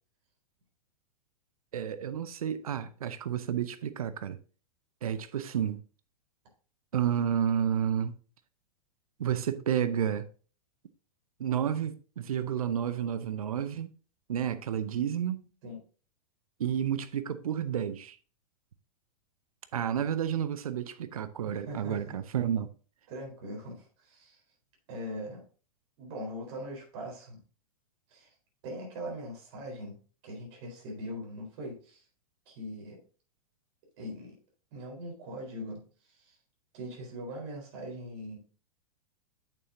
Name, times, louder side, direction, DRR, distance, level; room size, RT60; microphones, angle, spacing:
voice 1, 1.7-4.4 5.0-5.8 6.9-8.2 9.2-10.3 11.4-13.9 14.3-15.5 16.6-18.2 19.7-22.7, right 9 dB, 70° right, 0.6 m, -31 dB
voice 2, 21.4-22.2 23.1-24.4 24.9-25.4 26.0-27.4 28.1-28.3 28.6-29.9 30.2-32.0 32.5-33.0 34.0-34.4 34.7-35.8 36.2-36.3 36.7-38.4, equal, 50° right, 3.9 m, -41 dB
8.5 x 6.9 x 2.6 m
figure-of-eight pair, 100°, 19 cm